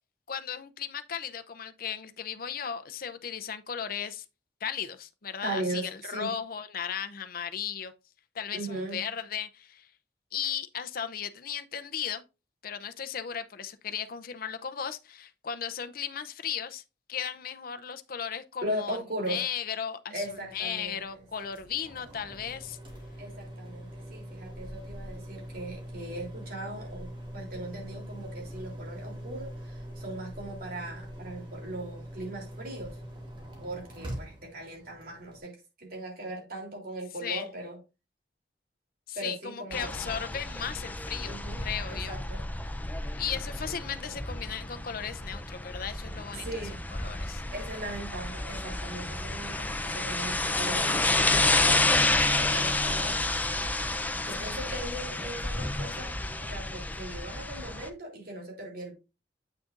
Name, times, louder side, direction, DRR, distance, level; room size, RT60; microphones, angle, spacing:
voice 1, 0.3-4.2 4.6-7.9 8.3-9.9 10.3-12.2 12.6-16.8 17.1-19.0 19.3-22.8 37.2-37.5 39.1-42.2 43.2-46.6 47.0-47.4 54.7-54.8, left 8 dB, 55° left, 0.6 m, -36 dB
voice 2, 5.4-6.3 8.5-9.0 18.6-19.4 20.1-21.5 23.2-33.0 33.6-37.8 39.1-39.9 41.2-41.6 41.9-42.4 46.3-46.8 47.5-51.8 52.4-53.2 54.2-58.9, right 1 dB, 60° right, 3.3 m, -38 dB
sound 1, 20.2-35.4, equal, 30° right, 2.6 m, -43 dB
sound 2, 39.7-57.9, left 2 dB, 10° left, 0.6 m, -30 dB
8.4 x 6.2 x 2.6 m
head